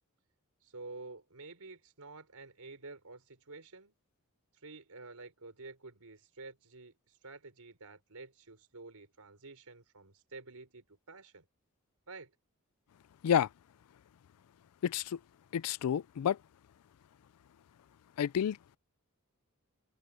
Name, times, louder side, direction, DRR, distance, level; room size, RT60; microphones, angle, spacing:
voice 1, 0.6-3.9 4.5-11.4 12.1-12.3, right 3 dB, 85° right, 4.1 m, -50 dB
voice 2, 14.8-15.2 15.5-16.4 18.2-18.6, left 8 dB, 85° left, 0.4 m, -29 dB
head